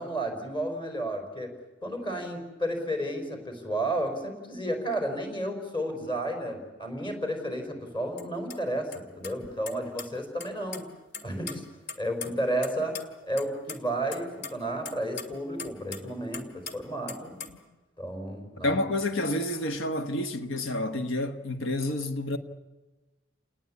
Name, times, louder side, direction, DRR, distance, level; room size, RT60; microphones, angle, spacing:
voice 1, 0.0-10.9 11.2-11.6 12.0-17.4 18.0-18.8, right 1 dB, 25° left, 4.7 m, -32 dB
sound 1, 8.2-8.3 8.5-8.6 8.9-9.0 9.2-10.1 10.4-10.8 11.1-12.7 13.0-13.1 13.4-13.8 14.1-16.1 16.3-16.7 17.1-17.6, left 5 dB, 55° left, 2.4 m, -38 dB
voice 2, 18.6-22.4, left 1 dB, 75° left, 1.4 m, -29 dB
29.0 x 19.5 x 8.5 m
head